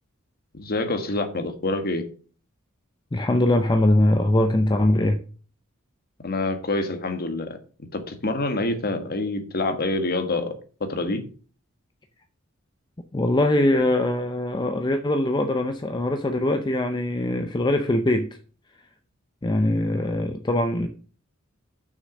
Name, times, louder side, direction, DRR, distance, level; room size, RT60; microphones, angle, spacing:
voice 1, 0.5-2.0 6.2-10.5 10.8-11.2, left 2 dB, 45° left, 1.4 m, -27 dB
voice 2, 3.1-5.2 13.1-18.4 19.4-20.9, left 1 dB, 20° left, 0.6 m, -22 dB
6.5 x 6.2 x 6.4 m
head